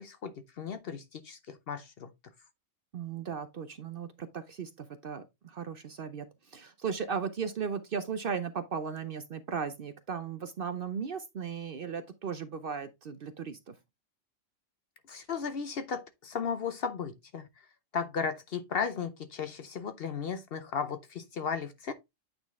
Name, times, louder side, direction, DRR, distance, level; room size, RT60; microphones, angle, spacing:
voice 1, 0.0-2.1 15.1-17.7 17.9-21.9, left 6 dB, 55° left, 0.7 m, -35 dB
voice 2, 2.9-13.8, right 6 dB, 55° right, 0.7 m, -36 dB
8.9 x 3.9 x 3.4 m
omnidirectional pair, 1.4 m